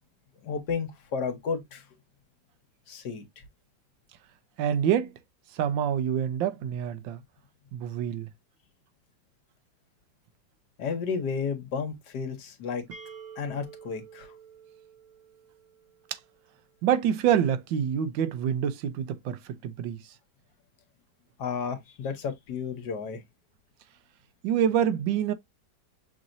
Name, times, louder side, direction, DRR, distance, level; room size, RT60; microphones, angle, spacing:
voice 1, 0.4-1.8 2.9-3.2 10.8-12.8 13.4-14.3 21.4-23.2, left 6 dB, 65° left, 1.5 m, -32 dB
voice 2, 4.6-5.1 5.5-7.2 7.7-8.3 16.1-16.2 16.8-20.0 24.4-25.3, right 9 dB, 85° right, 1.4 m, -26 dB
sound 1, 12.9-16.6, right 6 dB, 50° right, 1.2 m, -49 dB
5.9 x 2.7 x 2.5 m
omnidirectional pair, 2.0 m